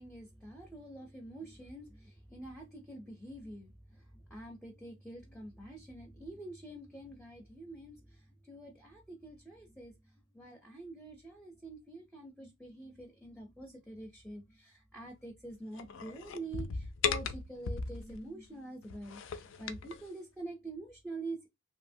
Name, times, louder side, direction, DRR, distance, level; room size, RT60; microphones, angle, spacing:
voice 1, 0.0-21.5, right 2 dB, ahead, 0.5 m, -46 dB
sound 1, 15.7-18.2 18.8-20.0, left 5 dB, 65° left, 0.3 m, -37 dB
2.7 x 2.7 x 2.6 m
head